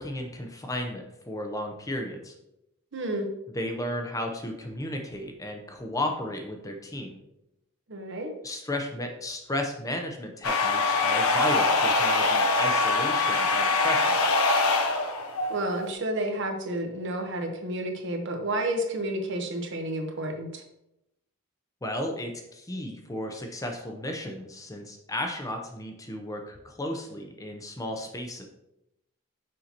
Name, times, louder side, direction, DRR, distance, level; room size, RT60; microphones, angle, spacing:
voice 1, 0.0-2.3 3.5-7.2 8.4-14.2 21.8-28.5, left 1 dB, 15° left, 3 dB, 0.6 m, -34 dB
voice 2, 2.9-3.3 7.9-8.3 15.5-20.6, right 1 dB, 55° right, 4 dB, 0.9 m, -30 dB
sound 1, 10.4-15.9, left 3 dB, 80° left, 0.8 m, -23 dB
6.4 x 5.6 x 2.9 m, 0.86 s
head